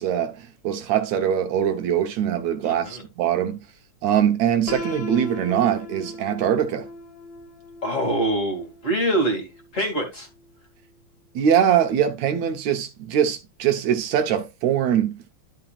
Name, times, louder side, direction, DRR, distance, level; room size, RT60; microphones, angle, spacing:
voice 1, 0.0-3.6 4.0-6.9 11.4-15.1, right 9 dB, 70° right, 2.3 m, -22 dB
voice 2, 2.6-3.0 7.8-10.3, right 1 dB, 25° left, 2.6 m, -25 dB
Piano, 4.7-10.5, left 3 dB, 65° left, 2.8 m, -38 dB
12.5 x 5.9 x 2.4 m
omnidirectional pair, 3.4 m